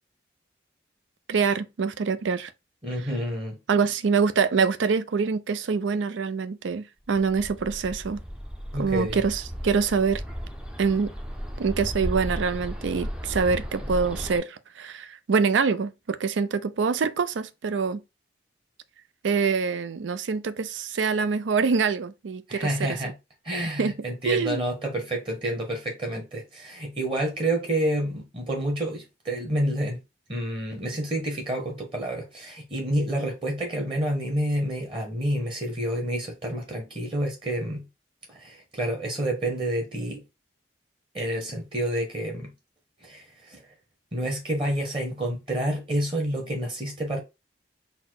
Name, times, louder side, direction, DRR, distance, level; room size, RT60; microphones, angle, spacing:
voice 1, 1.3-2.5 3.7-8.2 8.8-10.2 10.8-11.1 11.6-18.0 19.2-23.0 23.8-23.9 24.3-24.6, right 5 dB, 80° right, 0.4 m, -25 dB
voice 2, 2.8-3.6 8.7-9.2 22.5-23.1 23.4-30.0 30.3-37.8 38.3-40.2 41.1-42.5 43.0-43.6 44.1-47.2, right 1 dB, 25° right, 1.1 m, -29 dB
Bird, 7.1-14.4, equal, 5° right, 0.5 m, -35 dB
4.1 x 2.1 x 4.5 m
head